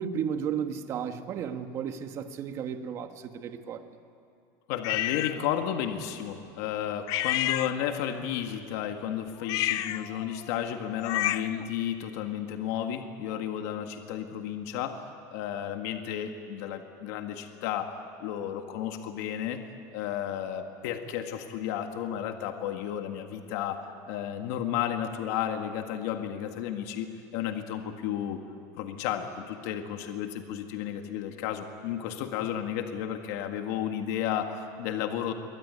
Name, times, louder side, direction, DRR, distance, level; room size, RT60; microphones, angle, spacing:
voice 1, 0.0-3.8, right 7 dB, 30° right, 7 dB, 1.5 m, -33 dB
voice 2, 4.7-19.6 19.9-28.4 28.8-35.3, left 10 dB, 60° left, 6 dB, 1.8 m, -33 dB
sound 1, 4.8-5.4 7.1-8.1 9.4-11.7, left 14 dB, 45° left, 0.7 m, -30 dB
26.5 x 23.0 x 9.7 m, 2.5 s
cardioid pair, 175°, 9 cm